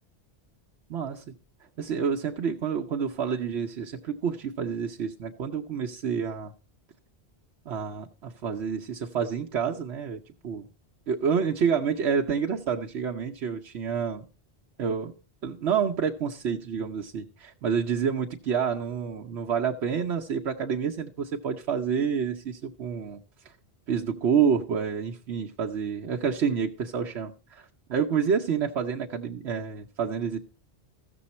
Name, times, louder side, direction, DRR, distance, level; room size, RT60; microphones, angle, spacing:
voice 1, 0.9-1.2 1.8-6.5 7.7-10.7 11.1-14.2 14.8-15.1 15.4-23.2 23.9-30.4, right 6 dB, 85° right, 0 dB, 1.0 m, -28 dB
14.5 x 7.0 x 4.2 m, 0.36 s
omnidirectional pair, 1.1 m